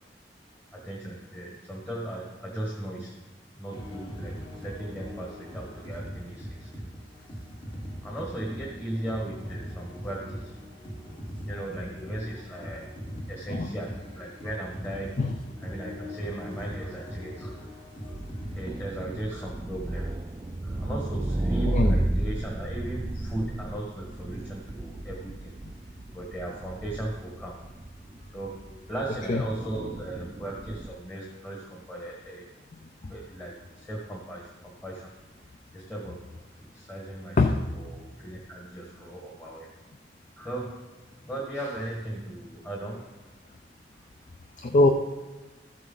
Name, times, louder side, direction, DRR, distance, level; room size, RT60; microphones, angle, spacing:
voice 1, 0.7-3.2 3.5-6.9 8.0-10.6 11.4-12.9 13.3-15.3 15.6-17.8 18.0-20.2 20.6-25.6 26.1-27.6 28.0-32.4 33.1-35.1 35.7-36.4 36.7-39.7 40.4-40.8 41.2-43.1 43.9-44.0, right 1 dB, 15° left, -3 dB, 1.5 m, -37 dB
sound 1, 3.7-18.8, equal, 30° left, 1.5 m, -40 dB
sound 2, 18.1-30.9, right 1 dB, 20° right, 0.3 m, -33 dB
voice 2, 21.6-22.0 29.3-29.4 33.0-33.1 37.4-37.6 44.6-44.9, left 2 dB, 45° left, 5 dB, 0.5 m, -22 dB
13.5 x 7.6 x 3.9 m, 1.2 s
head